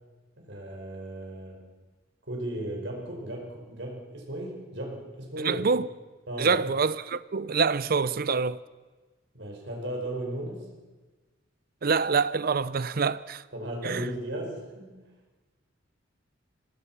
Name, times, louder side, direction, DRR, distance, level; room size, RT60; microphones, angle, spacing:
voice 1, 0.4-1.7 2.3-5.7 6.3-6.6 9.3-10.7 13.5-15.0, right 1 dB, 65° right, 5.4 m, -35 dB
voice 2, 5.4-5.9 6.4-8.6 11.8-13.4 13.8-14.1, right 5 dB, 50° right, 0.6 m, -26 dB
25.0 x 18.5 x 6.0 m
head